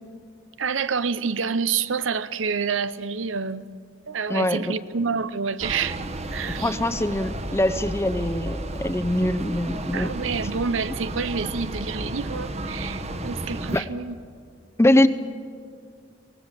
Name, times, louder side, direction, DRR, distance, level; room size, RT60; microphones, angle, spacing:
voice 1, 0.6-3.7 4.1-6.0 6.3-6.8 9.9-14.2, right 5 dB, 80° right, 14 dB, 0.7 m, -28 dB
voice 2, 4.3-4.7 6.6-10.1 13.7-13.9 14.8-15.1, left 1 dB, 15° left, 13 dB, 0.7 m, -22 dB
sound 1, 5.6-13.8, right 1 dB, 35° right, 1.1 m, -32 dB
24.0 x 18.5 x 7.4 m, 2.1 s
head